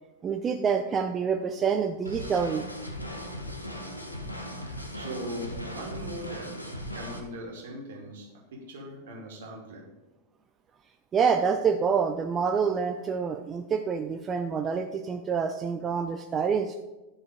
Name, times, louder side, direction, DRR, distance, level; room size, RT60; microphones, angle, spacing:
voice 1, 0.2-2.7 11.1-16.8, right 6 dB, 25° right, 5 dB, 0.5 m, -27 dB
sound 1, 2.1-7.2, left 1 dB, 85° left, 1.1 m, -38 dB
voice 2, 4.6-6.7 6.9-9.9, right 1 dB, 55° right, 0 dB, 2.3 m, -40 dB
11.0 x 4.9 x 4.8 m, 1.1 s
figure-of-eight pair, 90°, 0 cm